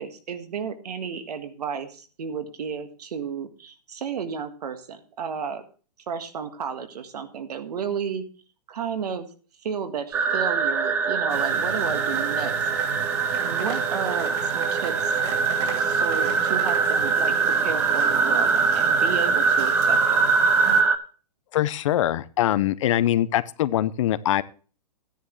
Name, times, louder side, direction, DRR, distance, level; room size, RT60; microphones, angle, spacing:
voice 1, 0.0-5.6 6.1-8.2 8.7-9.3 9.6-12.5 13.4-15.2 15.8-17.4 17.6-20.3, right 7 dB, 70° right, 8 dB, 1.7 m, -32 dB
sound 1, 10.1-21.0, right 5 dB, 10° right, 0.4 m, -23 dB
sound 2, 11.3-20.8, right 5 dB, 40° right, 2.7 m, -36 dB
voice 2, 21.5-24.4, left 12 dB, 50° left, 17 dB, 0.6 m, -23 dB
12.5 x 10.0 x 3.1 m, 0.37 s
hypercardioid pair, 150°, 21 cm